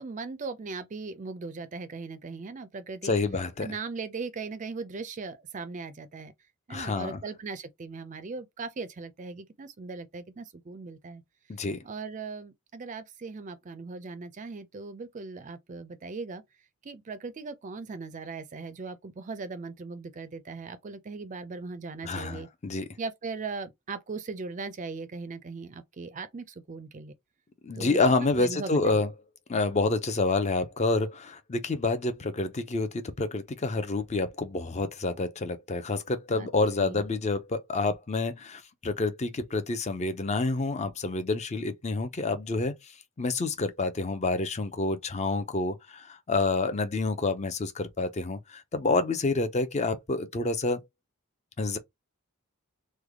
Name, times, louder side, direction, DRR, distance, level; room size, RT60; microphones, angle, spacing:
voice 1, 0.0-3.2 3.6-6.3 6.7-11.2 11.8-16.4 16.8-22.5 23.0-27.1 27.7-29.0 36.3-36.5 36.8-37.0, right 4 dB, 35° right, 0.4 m, -39 dB
voice 2, 3.0-3.7 6.7-7.2 11.5-11.8 22.0-22.9 27.6-29.1 29.5-42.7 43.2-50.8 51.6-51.8, left 3 dB, 30° left, 0.5 m, -28 dB
3.3 x 2.2 x 3.5 m
head